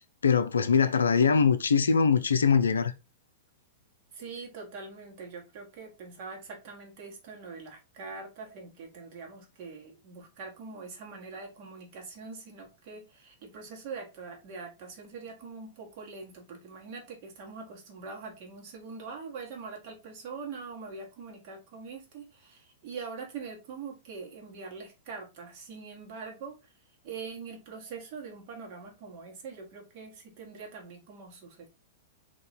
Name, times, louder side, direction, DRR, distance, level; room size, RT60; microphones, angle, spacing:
voice 1, 0.2-2.9, left 6 dB, 70° left, 0.5 m, -22 dB
voice 2, 4.1-26.6 27.0-31.7, right 4 dB, 45° right, 1.6 m, -43 dB
3.9 x 2.9 x 4.0 m
figure-of-eight pair, 100°, 0 cm